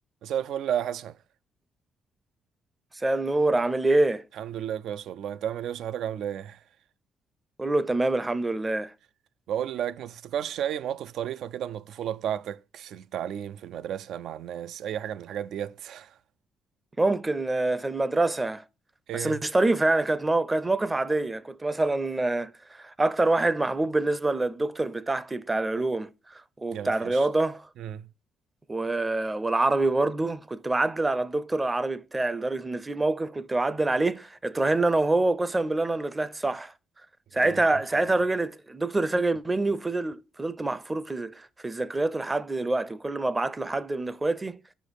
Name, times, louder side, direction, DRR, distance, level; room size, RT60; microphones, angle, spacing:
voice 1, 0.2-1.2 4.4-6.6 9.5-16.2 19.1-19.4 26.7-27.3 27.8-28.1 37.4-37.6 38.0-38.1, right 10 dB, 75° right, 0.4 m, -33 dB
voice 2, 2.9-4.2 7.6-8.9 17.0-18.6 19.1-27.7 28.7-36.7 37.3-44.6, right 2 dB, 20° right, 0.5 m, -26 dB
6.4 x 5.1 x 4.0 m
cardioid pair, 90°, 0 cm